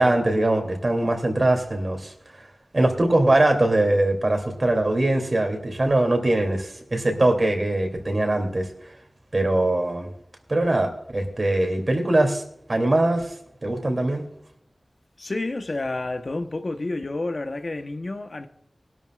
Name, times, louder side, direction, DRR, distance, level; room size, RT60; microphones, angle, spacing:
voice 1, 0.0-2.5 2.7-9.0 9.3-10.1 10.5-12.4 12.7-13.3 13.6-14.2, right 1 dB, 50° right, 2.8 m, -22 dB
voice 2, 15.2-18.5, left 2 dB, 60° left, 1.0 m, -29 dB
19.5 x 12.5 x 2.4 m
wide cardioid pair, 45°, 0 cm